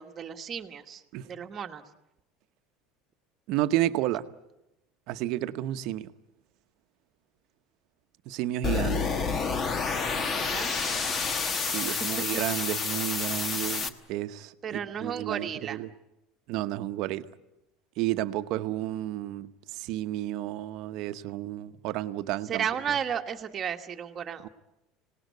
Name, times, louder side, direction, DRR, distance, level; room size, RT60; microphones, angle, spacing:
voice 1, 0.0-1.8 9.7-11.0 11.8-12.6 14.6-15.8 22.5-24.5, right 8 dB, 25° right, 1.3 m, -34 dB
voice 2, 3.5-4.2 5.1-6.1 8.3-9.1 11.6-15.9 16.5-17.3 18.0-22.7 24.4-24.5, right 14 dB, 55° right, 0.9 m, -31 dB
sound 1, 8.6-13.9, left 5 dB, 25° left, 1.1 m, -29 dB
26.0 x 18.5 x 9.4 m
cardioid pair, 160°, 0 cm